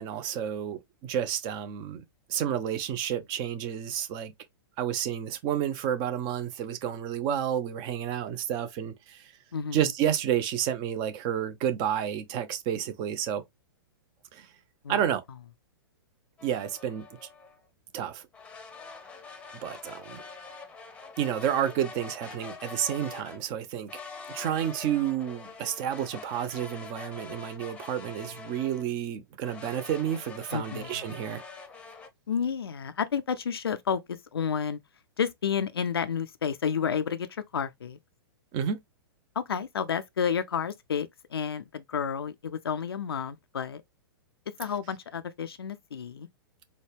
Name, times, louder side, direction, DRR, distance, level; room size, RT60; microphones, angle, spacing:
voice 1, 0.0-2.0 2.3-4.3 4.8-9.3 9.7-13.4 14.3-14.5 14.9-15.2 16.4-17.3 17.9-18.2 19.6-20.3 21.2-23.9 24.3-31.4 38.5-38.8, right 10 dB, 35° right, 0.7 m, -30 dB
sound 1, 16.4-17.6 18.3-23.4 23.9-28.9 29.4-32.1, left 4 dB, 10° left, 0.8 m, -45 dB
voice 2, 30.5-31.0 32.3-34.8 35.2-38.0 39.4-43.8 44.6-46.3, left 7 dB, 80° left, 0.4 m, -31 dB
4.2 x 2.3 x 3.3 m
hypercardioid pair, 110°, 13 cm